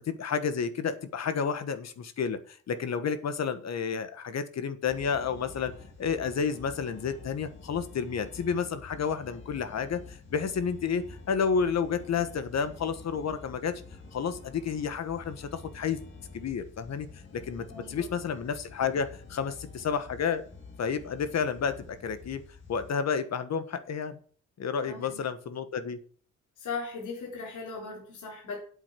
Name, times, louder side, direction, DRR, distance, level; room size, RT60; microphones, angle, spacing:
voice 1, 0.0-5.7 6.0-13.8 14.1-16.0 16.3-17.1 17.3-20.4 20.8-22.4 22.7-24.2 24.6-26.0, left 6 dB, 60° left, 11 dB, 1.5 m, -31 dB
sound 1, 4.9-22.9, left 4 dB, 40° left, 2.8 m, -48 dB
voice 2, 17.7-18.1 24.8-25.3 26.6-28.6, left 4 dB, 85° left, -2 dB, 4.3 m, -38 dB
8.5 x 8.3 x 5.9 m, 0.44 s
cardioid pair, 115°, 30 cm